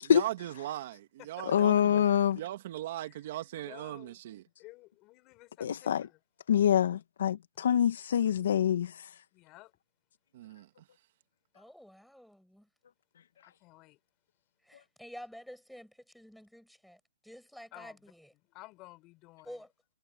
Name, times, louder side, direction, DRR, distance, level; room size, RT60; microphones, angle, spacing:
voice 1, 0.1-2.0 2.4-4.4 10.3-10.7, right 14 dB, 45° right, 1.9 m, -39 dB
voice 2, 1.4-2.4 5.6-6.1 6.5-9.2, left 9 dB, 60° left, 1.2 m, -26 dB
voice 3, 3.6-4.2 4.6-6.1 9.3-9.7 13.4-14.0 17.7-18.0 18.5-19.6, left 21 dB, 25° left, 5.1 m, -53 dB
voice 4, 11.5-12.7 14.6-18.3 19.4-19.7, equal, ahead, 7.8 m, -50 dB
hypercardioid pair, 160°, 0 cm